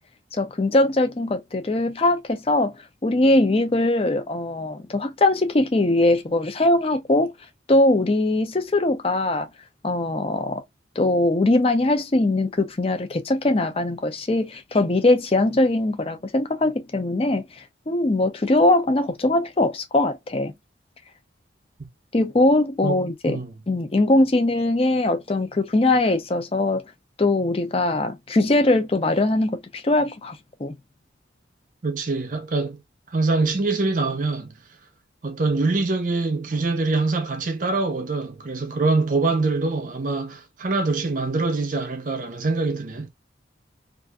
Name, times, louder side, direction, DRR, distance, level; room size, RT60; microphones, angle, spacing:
voice 1, 0.3-2.7 3.0-7.3 7.7-9.5 9.8-10.6 11.0-17.4 17.9-20.5 22.1-23.4 23.7-26.8 27.2-30.7, left 2 dB, 30° left, 0.5 m, -21 dB
voice 2, 22.8-23.6 31.8-32.8 33.1-34.5 35.2-43.1, right 3 dB, 45° right, 0.6 m, -24 dB
2.5 x 2.5 x 2.2 m
head